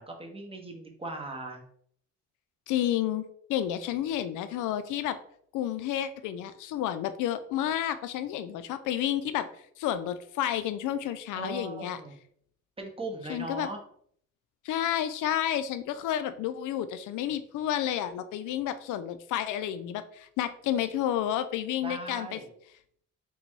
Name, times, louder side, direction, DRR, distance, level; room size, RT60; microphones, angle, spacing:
voice 1, 0.0-1.6 11.3-12.1 12.8-13.8 21.8-22.5, right 2 dB, 20° right, 2 dB, 0.9 m, -38 dB
voice 2, 2.7-3.2 3.5-5.2 5.5-9.5 9.8-12.0 13.3-13.7 14.6-22.4, left 11 dB, 85° left, 11 dB, 0.5 m, -30 dB
3.9 x 2.3 x 4.5 m, 0.64 s
cardioid pair, 90°, 30 cm